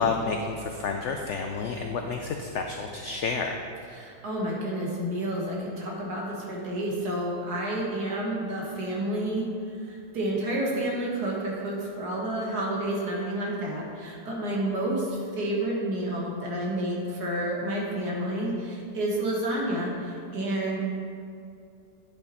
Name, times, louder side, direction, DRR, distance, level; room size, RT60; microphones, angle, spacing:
voice 1, 0.0-3.6, left 4 dB, 80° left, 4 dB, 0.6 m, -30 dB
voice 2, 3.9-9.4 9.9-20.8, right 1 dB, 70° right, -3 dB, 2.0 m, -30 dB
10.5 x 5.7 x 4.2 m, 2.5 s
omnidirectional pair, 1.8 m